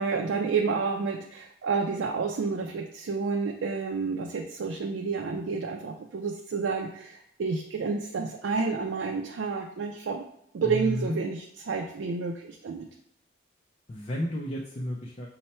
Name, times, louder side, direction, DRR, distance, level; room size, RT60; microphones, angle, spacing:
voice 1, 0.0-10.3 10.5-12.9, right 4 dB, 90° right, 2 dB, 0.4 m, -30 dB
voice 2, 10.6-11.2 13.9-15.3, left 1 dB, 35° left, -1 dB, 0.5 m, -32 dB
5.5 x 2.1 x 4.2 m, 0.75 s
head